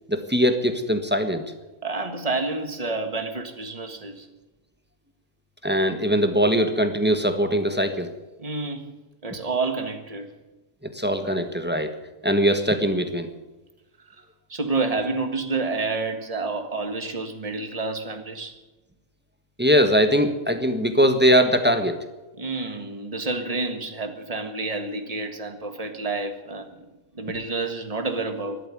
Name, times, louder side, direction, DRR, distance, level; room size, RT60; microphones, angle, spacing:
voice 1, 0.1-1.4 5.6-8.1 10.9-11.9 12.2-13.3 19.6-22.0, equal, 10° right, 7 dB, 1.3 m, -21 dB
voice 2, 1.8-4.3 8.4-8.9 9.2-10.3 14.5-18.5 22.4-26.7 27.1-28.6, right 3 dB, 25° right, 7 dB, 1.6 m, -29 dB
12.5 x 12.0 x 9.2 m, 1.1 s
omnidirectional pair, 1.5 m